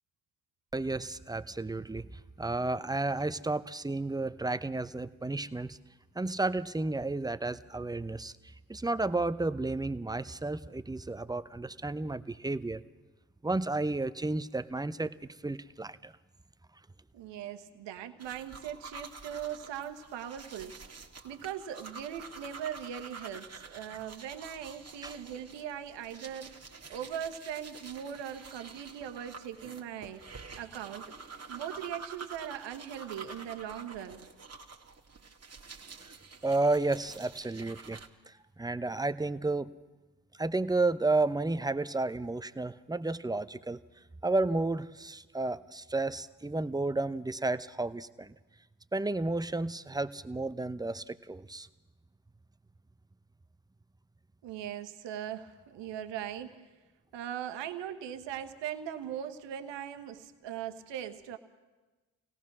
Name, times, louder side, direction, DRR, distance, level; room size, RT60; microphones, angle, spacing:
voice 1, 0.7-2.1 2.4-5.8 6.2-8.3 8.7-12.8 13.4-15.1 15.4-16.1 25.0-25.1 36.4-38.0 38.3-39.7 40.4-43.8 44.2-48.3 48.9-51.7, right 2 dB, 10° right, 14 dB, 0.7 m, -32 dB
voice 2, 17.1-20.8 21.2-26.6 26.9-30.3 30.6-31.1 31.5-34.3 54.4-56.6 57.1-61.4, right 9 dB, 70° right, 7 dB, 1.3 m, -40 dB
sound 1, 18.2-38.1, right 4 dB, 35° right, 1.9 m, -48 dB
24.5 x 17.5 x 6.1 m, 1.2 s
hypercardioid pair, 40°, 45 cm